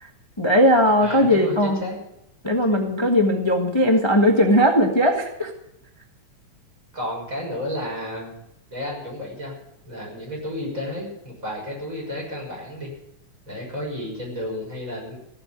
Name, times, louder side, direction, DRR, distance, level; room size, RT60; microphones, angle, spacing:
voice 1, 0.4-1.8 2.4-5.5, equal, 30° left, 3 dB, 0.5 m, -18 dB
voice 2, 1.0-2.0 2.7-2.8 6.9-8.3 8.7-9.5 9.9-12.9 13.5-15.2, left 1 dB, 25° right, -2 dB, 6.7 m, -32 dB
15.5 x 7.8 x 9.9 m, 0.80 s
omnidirectional pair, 3.5 m